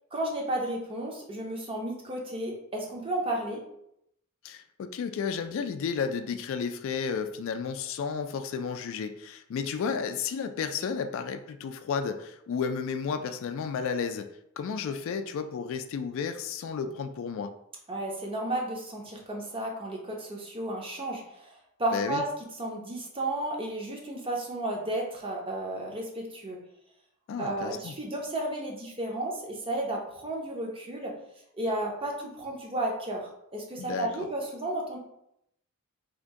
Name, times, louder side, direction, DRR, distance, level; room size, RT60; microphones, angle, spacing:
voice 1, 0.1-3.6 17.9-22.3 22.6-26.6 27.4-31.1 31.5-35.0, right 1 dB, 25° right, 0 dB, 0.6 m, -33 dB
voice 2, 4.4-14.3 14.6-17.5 21.9-22.2 27.3-28.0 33.8-34.3, left 6 dB, 65° left, 9 dB, 0.3 m, -32 dB
2.9 x 2.6 x 3.5 m, 0.77 s
head